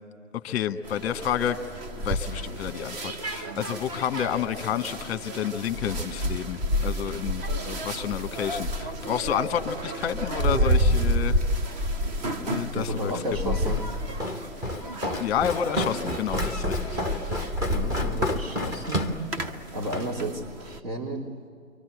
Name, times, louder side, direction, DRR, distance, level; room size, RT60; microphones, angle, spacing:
voice 1, 0.4-1.6 2.0-11.4 12.4-13.1 13.4-13.6 15.2-17.0, left 9 dB, 20° left, 9 dB, 1.2 m, -30 dB
sound 1, 0.8-20.8, equal, 30° right, 1.2 m, -30 dB
voice 2, 12.7-13.8 15.9-16.0 17.7-19.2 19.7-21.5, right 1 dB, 65° right, -5 dB, 3.4 m, -32 dB
Walk footsteps, 13.7-20.1, left 1 dB, 10° right, 0.8 m, -31 dB
28.0 x 24.5 x 8.0 m, 2.4 s
figure-of-eight pair, 130°, 41 cm